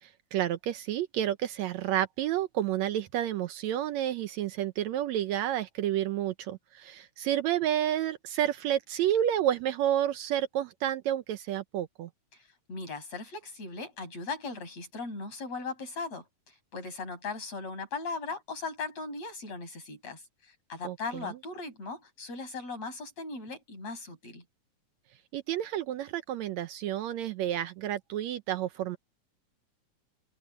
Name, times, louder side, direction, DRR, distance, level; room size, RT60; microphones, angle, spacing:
voice 1, 0.0-12.1 20.8-21.4 25.3-29.0, right 11 dB, 75° right, 1.9 m, -30 dB
voice 2, 12.3-24.4, left 4 dB, 55° left, 8.7 m, -38 dB
open air
omnidirectional pair, 3.5 m